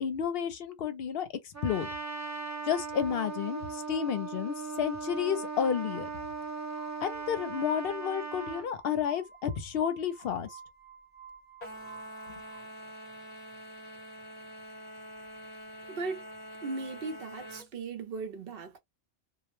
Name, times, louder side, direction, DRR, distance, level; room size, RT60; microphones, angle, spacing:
voice 1, 0.0-1.3 1.6-1.9 2.7-6.1 7.0-10.5, left 8 dB, 70° left, 0.8 m, -31 dB
Trumpet, 1.5-8.7, right 4 dB, 20° right, 0.6 m, -38 dB
Glass, 5.9-12.6, right 7 dB, 20° left, 0.6 m, -53 dB
sound 1, 11.6-17.7, equal, 45° left, 0.9 m, -45 dB
voice 2, 15.9-16.2 16.6-18.8, right 4 dB, 65° right, 0.8 m, -37 dB
2.2 x 2.0 x 3.0 m
omnidirectional pair, 1.1 m